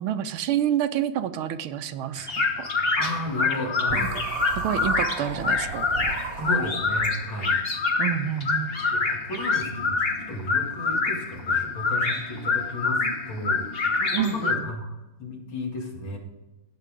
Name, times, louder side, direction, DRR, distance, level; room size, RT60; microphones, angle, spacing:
voice 1, 0.0-2.3 2.6-2.7 4.0-4.1 4.6-5.9 8.0-8.8 14.1-14.7, right 10 dB, 80° right, 10 dB, 1.5 m, -28 dB
sound 1, 2.2-14.6, left 4 dB, 35° left, 1.1 m, -26 dB
voice 2, 3.0-4.2 6.4-7.6 8.9-14.9 15.2-16.2, left 1 dB, 65° left, 0 dB, 3.0 m, -33 dB
sound 2, 3.9-7.1, right 5 dB, 55° right, 1.1 m, -34 dB
18.0 x 6.7 x 3.7 m, 1.1 s
omnidirectional pair, 2.4 m